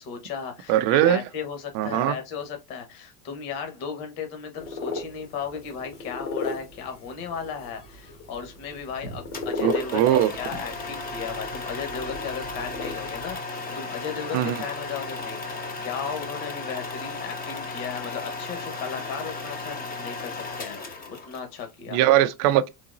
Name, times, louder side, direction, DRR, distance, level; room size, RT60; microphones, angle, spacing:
voice 1, 0.0-22.0, left 6 dB, 50° left, 1.3 m, -36 dB
voice 2, 0.7-1.2 1.8-2.1 9.6-10.3 14.3-14.6 21.9-22.7, right 12 dB, 45° right, 0.5 m, -20 dB
sound 1, 4.5-13.3, left 3 dB, 75° left, 1.8 m, -36 dB
sound 2, 9.3-21.6, left 3 dB, 20° left, 0.6 m, -35 dB
3.9 x 2.8 x 2.5 m
supercardioid pair, 135°, 47 cm